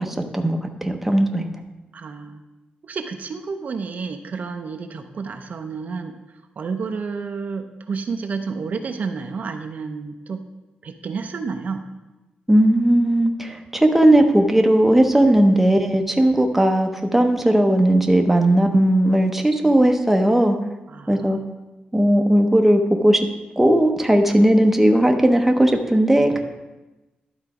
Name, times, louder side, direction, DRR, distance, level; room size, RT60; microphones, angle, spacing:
voice 1, 0.0-1.5 12.5-20.6 21.1-21.4 21.9-23.2 23.6-26.4, right 1 dB, 5° right, 3 dB, 0.7 m, -17 dB
voice 2, 1.9-2.4 2.8-6.2 6.6-10.4 10.8-11.8 20.9-21.3, right 5 dB, 55° right, 6 dB, 0.6 m, -30 dB
11.5 x 4.0 x 4.8 m, 1.1 s
wide cardioid pair, 115°, 3 cm